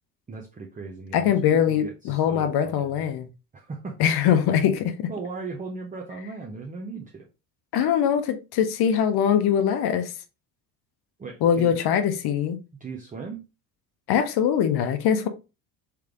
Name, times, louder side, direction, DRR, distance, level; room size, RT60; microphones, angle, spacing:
voice 1, 0.3-3.0 3.5-4.1 5.1-7.3 11.2-11.7 12.8-13.4, right 4 dB, 15° right, 0.7 m, -37 dB
voice 2, 1.1-3.3 4.0-5.1 7.7-10.1 11.4-12.6 14.1-15.3, left 8 dB, 50° left, 0.8 m, -22 dB
3.4 x 3.3 x 3.6 m
hypercardioid pair, 60°, 49 cm